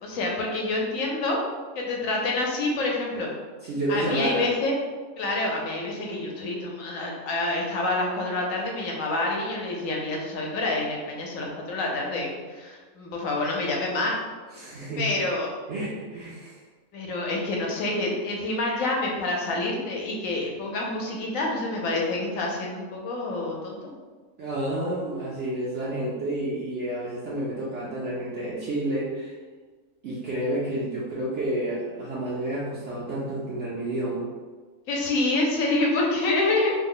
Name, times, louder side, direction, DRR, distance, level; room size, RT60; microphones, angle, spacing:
voice 1, 0.0-1.4 1.7-3.3 3.9-4.7 5.2-14.1 15.0-15.5 16.9-23.9 34.9-36.7, left 2 dB, 70° left, -1 dB, 1.0 m, -27 dB
voice 2, 3.6-4.5 14.5-15.2 15.7-16.6 24.4-29.4 30.0-34.3, right 1 dB, 65° right, -7 dB, 0.8 m, -30 dB
3.1 x 2.0 x 3.7 m, 1.4 s
omnidirectional pair, 1.5 m